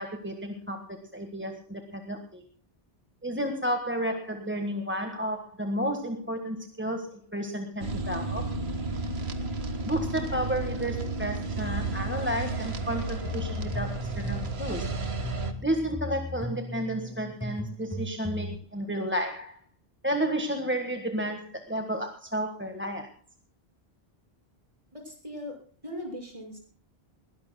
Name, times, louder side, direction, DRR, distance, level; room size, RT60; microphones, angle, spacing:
voice 1, 0.0-2.4 3.2-8.5 9.8-14.9 15.6-19.6 20.0-23.1, equal, 10° right, 4 dB, 1.5 m, -32 dB
sound 1, 7.8-15.5, right 3 dB, 80° right, 1.8 m, -32 dB
sound 2, 13.2-18.6, equal, 5° left, 1.4 m, -37 dB
voice 2, 24.9-25.6 25.8-26.6, left 1 dB, 30° right, 1 dB, 6.1 m, -39 dB
21.0 x 17.5 x 2.2 m, 0.41 s
omnidirectional pair, 1.0 m